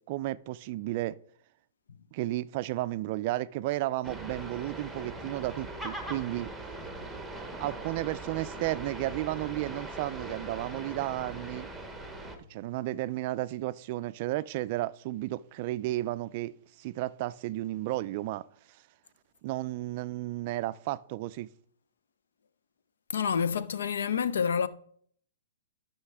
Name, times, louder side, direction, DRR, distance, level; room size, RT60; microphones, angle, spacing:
voice 1, 0.1-1.2 2.1-6.5 7.6-11.7 12.5-18.4 19.4-21.5, right 16 dB, 40° right, 0.3 m, -33 dB
sound 1, 4.0-12.4, right 2 dB, ahead, 1.0 m, -40 dB
voice 2, 23.1-24.7, left 7 dB, 85° left, 0.5 m, -28 dB
13.0 x 5.6 x 3.5 m
hypercardioid pair, 150°, 0 cm